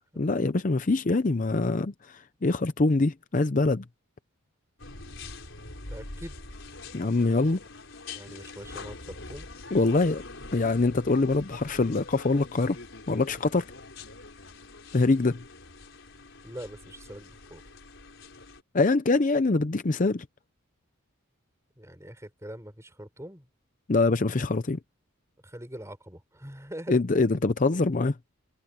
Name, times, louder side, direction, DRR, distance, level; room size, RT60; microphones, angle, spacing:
voice 1, 0.2-3.8 6.9-7.6 9.7-10.2 10.5-12.8 13.1-13.7 14.9-15.4 18.7-20.2 23.9-24.8 26.9-28.2, left 3 dB, 40° left, 0.6 m, -24 dB
sound 1, 4.8-18.6, left 3 dB, 60° left, 5.7 m, -44 dB
voice 2, 5.9-6.4 8.1-9.5 16.4-17.6 21.8-23.5 25.4-27.0, right 1 dB, 15° right, 5.0 m, -42 dB
head